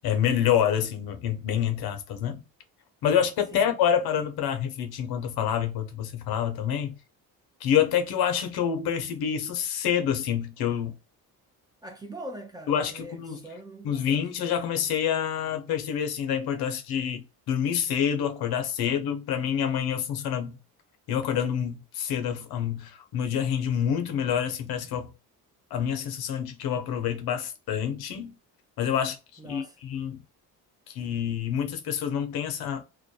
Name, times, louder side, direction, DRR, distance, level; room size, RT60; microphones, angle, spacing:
voice 1, 0.0-2.4 3.0-7.0 7.6-10.9 12.7-13.4 13.8-20.6 21.1-25.1 25.7-28.4 28.8-29.2 29.5-30.2 30.9-32.8, left 9 dB, 70° left, 0.6 m, -27 dB
voice 2, 11.8-14.2 29.4-29.8, right 1 dB, 10° right, 0.5 m, -42 dB
2.2 x 2.2 x 2.6 m
cardioid pair, 90°, 38 cm